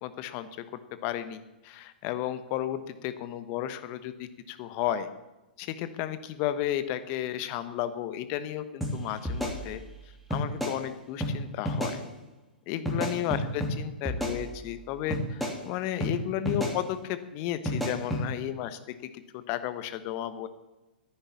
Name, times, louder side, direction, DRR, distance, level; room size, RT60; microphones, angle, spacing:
voice 1, 0.0-0.5 1.0-5.1 5.6-9.8 10.3-12.0 12.7-18.8 19.1-20.5, left 12 dB, 40° left, 12 dB, 1.2 m, -33 dB
sound 1, 8.8-8.9 9.3-10.0 10.3-10.8 11.2-11.3 11.7-12.0 12.9-13.7 14.1-14.8 15.1-15.6 16.0-16.1 16.5-16.8 17.7-18.2, equal, ahead, 3.0 m, -30 dB
10.5 x 10.0 x 8.6 m, 1.0 s
figure-of-eight pair, 110°, 5 cm